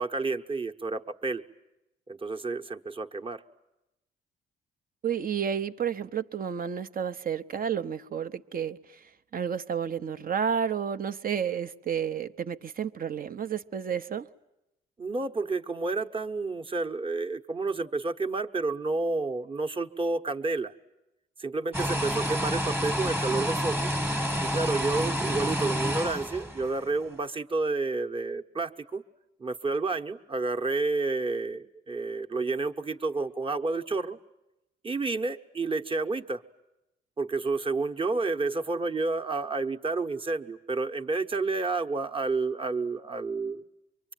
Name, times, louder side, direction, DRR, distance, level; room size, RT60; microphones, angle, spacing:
voice 1, 0.0-1.4 2.1-3.4 15.0-20.7 21.4-23.9 24.4-29.0 29.4-34.2 34.8-36.4 37.2-43.6, right 3 dB, 25° right, 1.2 m, -30 dB
voice 2, 5.0-9.0 9.3-14.3, right 7 dB, 45° right, 0.9 m, -31 dB
sound 1, 21.7-26.9, equal, 10° right, 1.3 m, -29 dB
24.5 x 23.5 x 9.1 m
cardioid pair, 90°, 20 cm